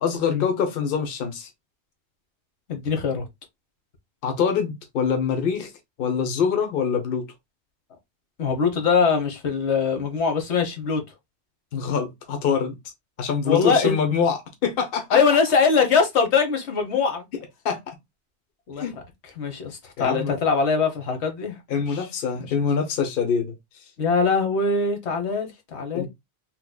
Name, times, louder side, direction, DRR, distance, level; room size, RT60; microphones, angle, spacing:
voice 1, 0.0-1.5 4.2-5.7 6.0-7.2 11.7-12.8 13.2-15.2 17.6-17.9 18.8-19.0 20.0-20.4 21.7-23.5 25.9-26.1, left 6 dB, 60° left, 0.9 m, -24 dB
voice 2, 2.7-3.2 8.4-11.0 13.4-14.0 15.1-17.2 18.7-18.9 19.2-21.6 21.9-22.1 22.4-22.5 24.0-26.1, left 5 dB, 80° left, 1.2 m, -22 dB
3.8 x 2.9 x 2.2 m
omnidirectional pair, 1.1 m